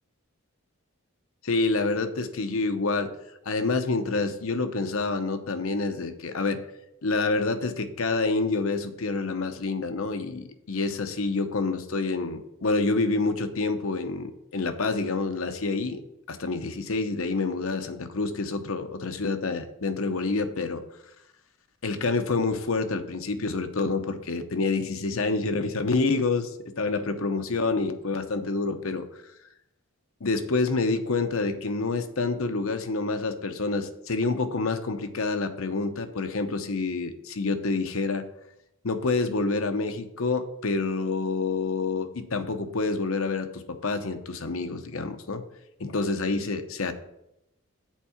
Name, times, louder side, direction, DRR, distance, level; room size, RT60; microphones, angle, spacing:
voice 1, 1.4-3.1 3.5-6.6 7.0-16.0 16.3-20.8 21.8-29.1 30.2-38.3 38.8-45.4 45.8-46.9, left 3 dB, 70° left, 9 dB, 0.8 m, -27 dB
7.4 x 4.7 x 7.0 m, 0.83 s
head